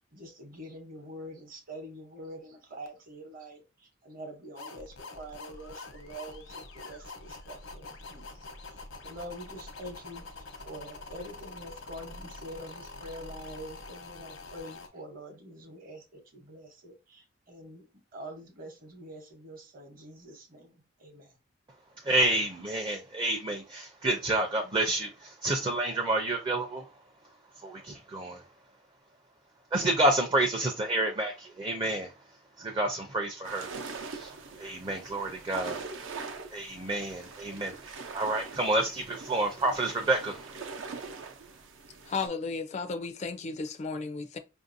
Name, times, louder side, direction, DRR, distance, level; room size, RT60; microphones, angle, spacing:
voice 1, 0.1-21.4, right 1 dB, 45° right, 0.9 m, -46 dB
sound 1, 4.6-14.9, left 3 dB, 80° left, 0.9 m, -45 dB
voice 2, 22.0-26.9 27.6-28.4 29.7-32.1 32.6-33.7 34.1-35.8 36.5-40.7, right 1 dB, 25° right, 0.5 m, -29 dB
sound 2, 33.4-42.3, right 4 dB, 80° right, 0.7 m, -43 dB
voice 3, 42.1-44.4, left 4 dB, 35° left, 0.4 m, -34 dB
5.2 x 2.6 x 2.6 m
head